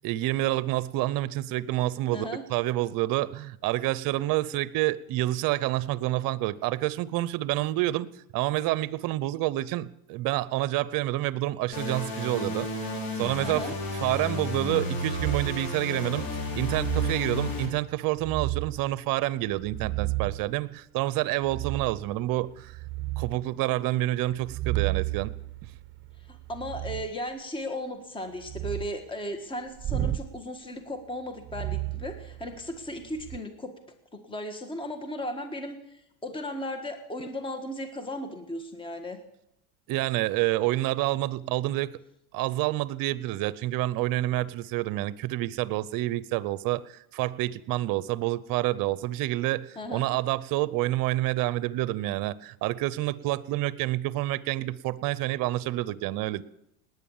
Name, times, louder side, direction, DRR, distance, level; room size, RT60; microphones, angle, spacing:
voice 1, 0.0-13.7 14.0-16.3 16.5-22.7 23.2-25.3 39.9-41.9 42.3-56.4, right 16 dB, 50° right, 19 dB, 0.8 m, -28 dB
sound 1, 11.7-17.7, left 2 dB, 55° left, 4.7 m, -32 dB
voice 2, 13.4-13.7 26.3-33.8 34.1-39.2 49.7-50.1, left 1 dB, 10° left, 7 dB, 1.6 m, -36 dB
sound 2, 15.1-15.7 16.5-17.2 18.2-18.9 19.5-20.5 21.4-22.0 22.5-23.4 24.4-27.1 28.4-28.9 29.8-30.3 31.4-32.7 33.1-33.4, right 16 dB, 25° right, 1.0 m, -32 dB
19.0 x 9.5 x 7.3 m, 0.82 s
supercardioid pair, 120°, 43 cm